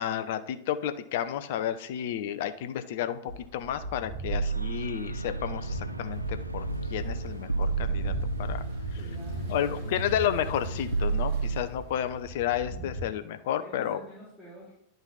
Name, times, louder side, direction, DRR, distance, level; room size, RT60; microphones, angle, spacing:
voice 1, 0.0-8.1 8.4-8.6 9.5-14.0, left 10 dB, 50° left, 11 dB, 0.6 m, -31 dB
sound 1, 3.3-13.0, right 1 dB, 50° right, 3.1 m, -38 dB
sound 2, 4.3-11.6, right 4 dB, 85° right, 0.4 m, -32 dB
voice 2, 8.9-10.0 13.6-14.7, right 1 dB, ahead, -8 dB, 2.4 m, -47 dB
10.5 x 4.0 x 4.0 m, 0.79 s
figure-of-eight pair, 90°, 0 cm